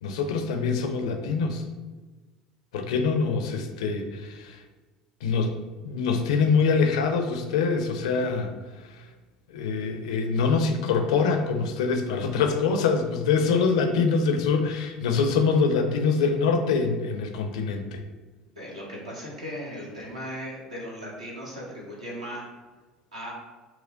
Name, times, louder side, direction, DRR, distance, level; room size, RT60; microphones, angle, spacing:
voice 1, 0.0-1.6 2.7-4.6 5.2-5.5 5.8-8.5 9.5-18.0, left 5 dB, 70° left, 5 dB, 0.4 m, -24 dB
voice 2, 18.5-22.4 23.1-23.3, equal, 80° right, -4 dB, 1.1 m, -37 dB
4.3 x 2.1 x 3.7 m, 1.3 s
figure-of-eight pair, 65°, 4 cm